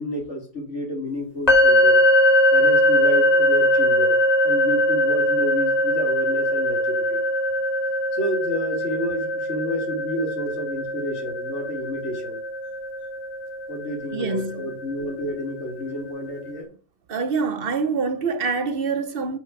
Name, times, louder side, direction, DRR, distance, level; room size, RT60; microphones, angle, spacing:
voice 1, 0.0-2.0 2.5-7.3 8.1-12.4 13.7-16.7, left 1 dB, 90° left, 3.0 m, -30 dB
sound 1, 1.5-15.3, left 1 dB, 35° left, 1.8 m, -21 dB
voice 2, 14.1-14.7 17.1-19.4, right 4 dB, 55° right, 0.9 m, -25 dB
5.9 x 5.4 x 6.0 m
omnidirectional pair, 1.2 m